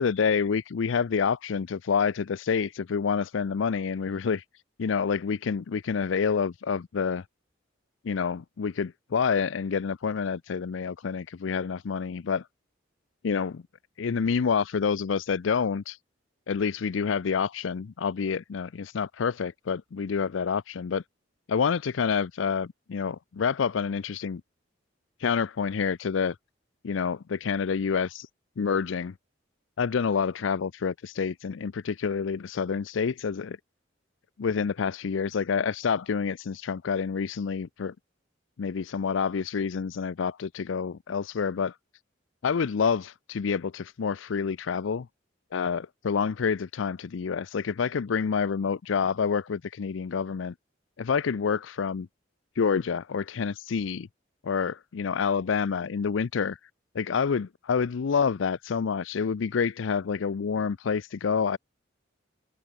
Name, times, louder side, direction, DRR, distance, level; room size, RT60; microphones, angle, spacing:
voice 1, 0.0-4.4 4.8-7.2 8.0-12.4 13.2-13.6 14.0-16.0 16.5-21.0 21.5-24.4 25.2-26.4 26.8-28.3 28.6-29.1 29.8-33.6 34.4-37.9 38.6-41.7 42.4-45.1 45.5-50.5 51.0-52.1 52.6-54.1 54.4-56.6 56.9-61.6, left 6 dB, 80° left, 0.5 m, -28 dB
head